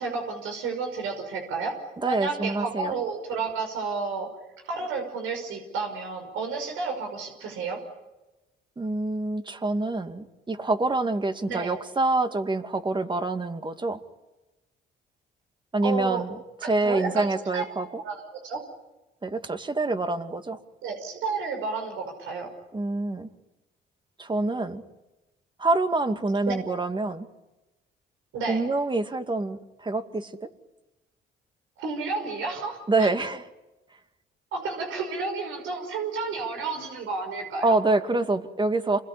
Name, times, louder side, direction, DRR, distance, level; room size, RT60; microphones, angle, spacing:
voice 1, 0.0-1.7 2.1-4.3 4.6-7.8 11.5-11.7 15.8-16.2 16.6-17.6 18.0-18.6 20.8-22.5 26.5-26.6 28.3-28.6 31.8-33.1 34.5-37.7, right 4 dB, 90° right, 3 dB, 5.6 m, -31 dB
voice 2, 2.0-2.9 8.8-14.0 15.7-16.4 16.6-18.0 19.2-20.6 22.7-23.3 24.2-24.8 25.6-27.3 28.5-30.5 32.9-33.4 37.6-39.0, right 2 dB, 25° right, 8 dB, 2.3 m, -26 dB
27.5 x 21.5 x 10.0 m, 1.0 s
cardioid pair, 90°, 20 cm